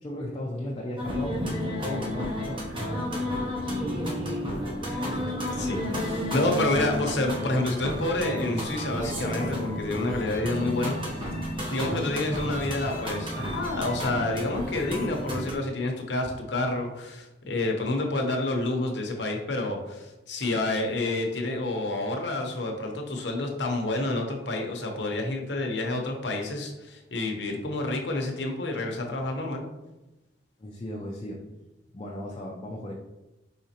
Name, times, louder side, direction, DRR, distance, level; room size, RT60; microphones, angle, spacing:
voice 1, 0.0-3.3 11.5-11.7 30.6-31.5 31.9-32.9, left 1 dB, 30° left, -4 dB, 0.5 m, -36 dB
sound 1, 1.0-15.5, equal, 30° right, 0.9 m, -32 dB
voice 2, 4.9-11.2 11.7-29.6, left 2 dB, 70° left, 2 dB, 0.8 m, -29 dB
5.0 x 3.6 x 2.8 m, 1.0 s
head